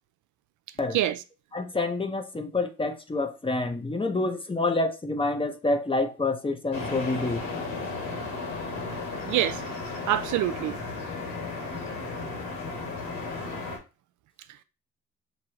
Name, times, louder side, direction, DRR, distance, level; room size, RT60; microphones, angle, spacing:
voice 1, 0.9-1.2 9.2-9.6 10.1-10.8 14.5-14.6, right 13 dB, 75° right, 0.5 m, -26 dB
voice 2, 1.5-7.4, left 2 dB, 20° left, 0.7 m, -27 dB
sound 1, 6.7-13.8, left 3 dB, 80° left, 2.0 m, -34 dB
6.1 x 2.7 x 2.9 m
cardioid pair, 90°, 30 cm